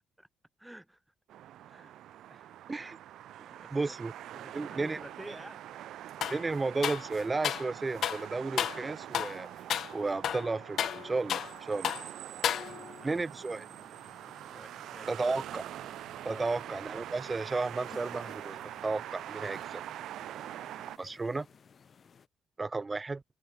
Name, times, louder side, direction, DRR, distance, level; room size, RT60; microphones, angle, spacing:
voice 1, 0.6-1.0 1.7-1.9 2.3-2.5 3.4-3.9 4.3-5.6 12.6-13.2 14.5-15.1 16.3-16.4, right 1 dB, 5° right, 3.1 m, -50 dB
sound 1, 1.3-21.0, right 12 dB, 80° right, 4.3 m, -44 dB
voice 2, 3.7-4.1 4.5-5.0 6.3-9.5 9.9-12.0 13.0-13.7 15.1-15.6 16.3-19.8 21.0-21.5 22.6-23.2, right 3 dB, 25° right, 1.9 m, -33 dB
sound 2, 6.2-6.4 6.8-7.7 8.0-8.2 8.6-8.8 9.1-9.4 9.7-9.9 10.2-11.6 11.8-12.1 12.4-13.0, left 10 dB, 65° left, 0.9 m, -32 dB
sound 3, 12.5-22.3, left 6 dB, 45° left, 6.9 m, -59 dB
cardioid pair, 90°, 0 cm